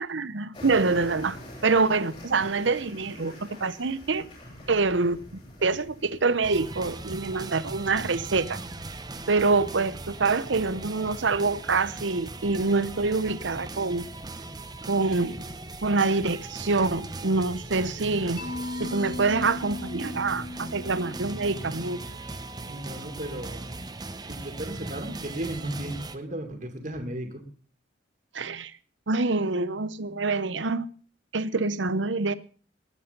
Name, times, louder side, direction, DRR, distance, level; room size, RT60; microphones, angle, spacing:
voice 1, 0.0-1.4 1.6-4.3 4.7-5.2 5.6-8.6 9.3-14.1 14.9-15.5 15.8-18.4 18.8-22.0 28.3-28.7 29.1-30.9 31.3-32.3, right 3 dB, 75° right, 16 dB, 0.9 m, -26 dB
sound 1, 0.5-7.2, left 1 dB, 30° left, 6.8 m, -45 dB
sound 2, 6.4-26.2, right 2 dB, 20° right, 0.9 m, -39 dB
Mallet percussion, 18.4-22.4, left 2 dB, 55° left, 5.8 m, -38 dB
voice 2, 22.6-23.8 24.3-27.4, right 1 dB, 40° right, 5 dB, 2.5 m, -35 dB
20.5 x 8.5 x 5.3 m, 0.42 s
head